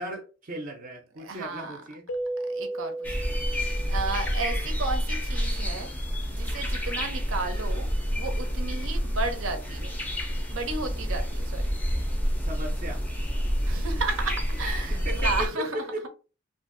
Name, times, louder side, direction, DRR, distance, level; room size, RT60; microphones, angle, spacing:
voice 1, 0.0-2.0 12.4-13.1 14.9-16.1, right 1 dB, 40° right, 0.6 m, -36 dB
voice 2, 1.2-1.8 2.5-5.9 6.3-9.9 10.5-11.7 13.6-15.8, right 3 dB, 80° right, 0.7 m, -33 dB
Keyboard (musical), 2.1-4.6, right 2 dB, 85° left, 0.5 m, -35 dB
sound 1, 3.0-15.5, equal, 10° left, 0.4 m, -28 dB
2.6 x 2.5 x 2.5 m
head